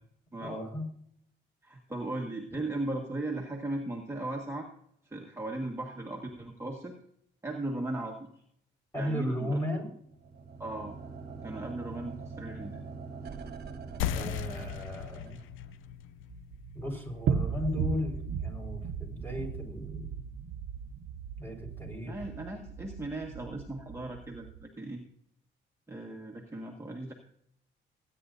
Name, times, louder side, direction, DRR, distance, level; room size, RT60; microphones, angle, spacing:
voice 1, 0.4-0.9 8.9-9.9 14.1-15.4 16.7-20.2 21.4-22.2, left 1 dB, 10° left, 1 dB, 4.9 m, -35 dB
voice 2, 1.6-4.7 5.0-6.9 7.4-8.3 9.0-9.6 10.6-10.9 11.4-12.8 22.0-25.0 25.9-27.1, right 2 dB, 15° right, 0 dB, 1.6 m, -37 dB
sound 1, 10.1-15.7, right 4 dB, 50° right, 1.3 m, -43 dB
sound 2, 14.0-19.1, left 10 dB, 85° left, 0.5 m, -39 dB
sound 3, 16.3-24.6, right 7 dB, 80° right, 0.9 m, -36 dB
21.5 x 9.6 x 2.7 m, 0.68 s
cardioid pair, 90°, 20 cm